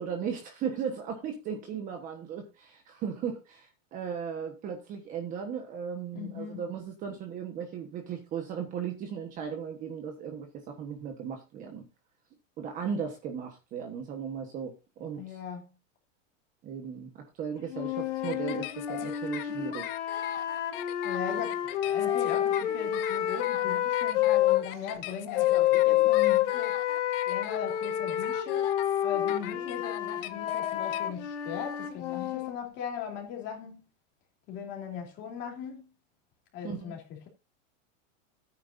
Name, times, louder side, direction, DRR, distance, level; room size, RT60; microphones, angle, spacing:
voice 1, 0.0-11.8 12.6-14.7 15.0-15.4 16.6-19.9 36.6-36.9, right 7 dB, 20° right, 1.2 m, -36 dB
voice 2, 6.1-6.6 15.1-15.7 21.0-26.8 27.3-28.7 29.0-33.8 34.5-35.9 36.5-37.4, left 7 dB, 30° left, 3.1 m, -39 dB
sound 1, 17.7-24.6 25.3-32.5, left 12 dB, 60° left, 3.1 m, -28 dB
sound 2, 18.2-31.0, left 13 dB, 45° left, 1.1 m, -41 dB
14.5 x 9.2 x 2.6 m
supercardioid pair, 180°, 39 cm